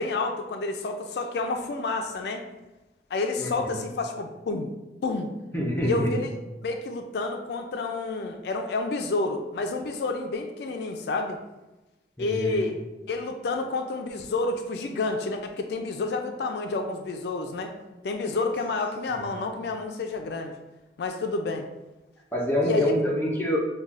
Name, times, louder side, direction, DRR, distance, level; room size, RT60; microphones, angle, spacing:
voice 1, 0.0-2.4 3.1-4.7 5.0-5.3 5.8-6.3 6.6-11.4 12.2-12.8 13.1-17.7 18.0-20.5 21.0-21.7 22.6-22.8, left 3 dB, 70° left, 5 dB, 0.3 m, -29 dB
voice 2, 3.4-3.7 5.5-6.2 12.2-12.6 22.3-23.6, left 1 dB, 15° left, -2 dB, 0.5 m, -26 dB
5.3 x 2.2 x 2.5 m, 1.0 s
head